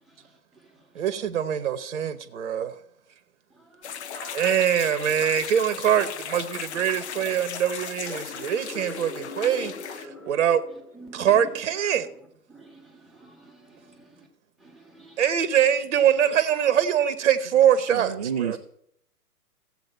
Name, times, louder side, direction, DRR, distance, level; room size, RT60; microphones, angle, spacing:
voice 1, 0.9-2.7 4.1-9.7 10.3-10.6 11.1-12.1 15.2-18.6, right 9 dB, 50° right, 1.1 m, -23 dB
voice 2, 3.6-4.0 6.6-7.3 10.1-10.3 10.9-11.5 12.5-14.3 14.6-15.2, right 3 dB, ahead, 1.2 m, -49 dB
sound 1, 3.8-10.1, left 8 dB, 45° left, 0.7 m, -37 dB
sound 2, 7.9-11.7, left 3 dB, 75° left, 2.2 m, -42 dB
voice 3, 17.9-18.6, right 8 dB, 25° right, 0.4 m, -29 dB
15.5 x 7.8 x 4.4 m
figure-of-eight pair, 125°, 46 cm